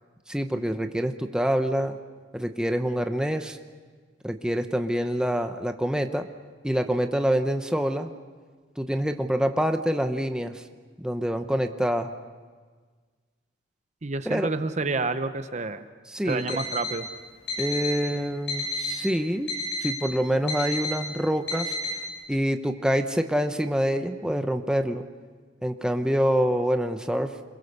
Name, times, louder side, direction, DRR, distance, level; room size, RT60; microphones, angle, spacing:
voice 1, 0.3-2.0 2.3-3.6 4.2-6.3 6.6-8.1 8.8-10.6 11.0-12.1 14.2-14.5 16.1-16.6 17.6-19.5 19.8-21.8 22.3-25.0 25.6-27.4, equal, 5° right, 6 dB, 0.9 m, -26 dB
voice 2, 14.0-15.8 16.2-17.1, right 3 dB, 40° right, 10 dB, 0.9 m, -29 dB
Alarm, 16.3-17.0 17.5-18.0 18.5-19.0 19.5-20.0 20.5-21.0 21.5-22.0, left 2 dB, 60° left, 6.7 m, -31 dB
27.5 x 22.0 x 6.7 m, 1.5 s
head